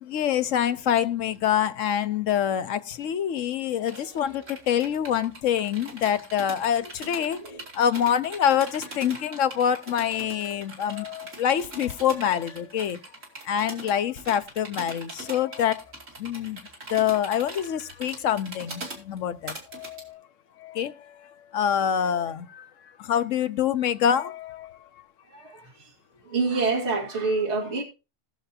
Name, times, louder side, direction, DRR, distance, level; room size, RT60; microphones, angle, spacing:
voice 1, 0.0-7.4 7.7-13.0 13.5-15.8 16.2-16.6 16.9-20.2 20.6-22.7 23.0-24.8, left 9 dB, 85° left, 1.1 m, -26 dB
voice 2, 3.8-4.2 6.8-6.9 7.2-7.6 25.3-25.9 26.2-27.8, right 3 dB, 65° right, 2.4 m, -28 dB
sound 1, 3.9-20.0, right 2 dB, 85° right, 2.9 m, -41 dB
19.5 x 6.7 x 2.8 m
omnidirectional pair, 1.3 m